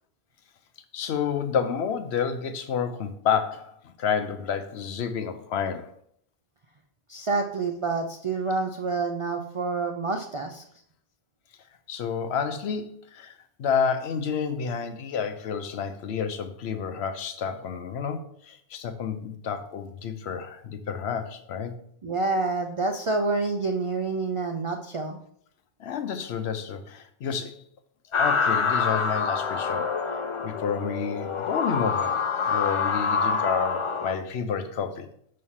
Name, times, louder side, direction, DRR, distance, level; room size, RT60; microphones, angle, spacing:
voice 1, 0.9-5.9 11.9-13.3 13.6-21.7 25.8-27.6 28.1-35.1, left 6 dB, 75° left, 8 dB, 0.9 m, -30 dB
voice 2, 7.1-10.6 22.0-25.2, right 3 dB, 55° right, 4 dB, 0.3 m, -28 dB
sound 1, 28.1-34.1, left 5 dB, 55° left, 0.3 m, -26 dB
5.6 x 3.2 x 5.5 m, 0.67 s
omnidirectional pair, 1.2 m